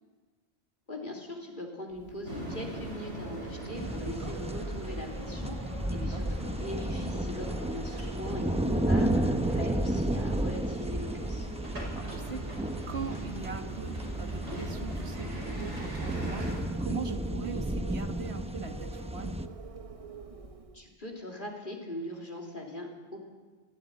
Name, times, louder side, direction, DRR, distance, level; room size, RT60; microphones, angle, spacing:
voice 1, 0.9-11.5 20.7-23.2, left 1 dB, 45° left, 0 dB, 3.3 m, -41 dB
Wind, 1.9-20.9, right 4 dB, 30° right, 1.1 m, -45 dB
sound 1, 2.3-16.6, right 1 dB, 90° right, 5.8 m, -42 dB
sound 2, 3.8-19.5, right 1 dB, 5° right, 0.8 m, -32 dB
voice 2, 3.9-4.3 5.8-6.5 11.7-12.4 12.9-19.3, right 5 dB, 70° right, 6 dB, 1.6 m, -41 dB
19.5 x 14.0 x 9.5 m, 1.4 s
omnidirectional pair, 1.1 m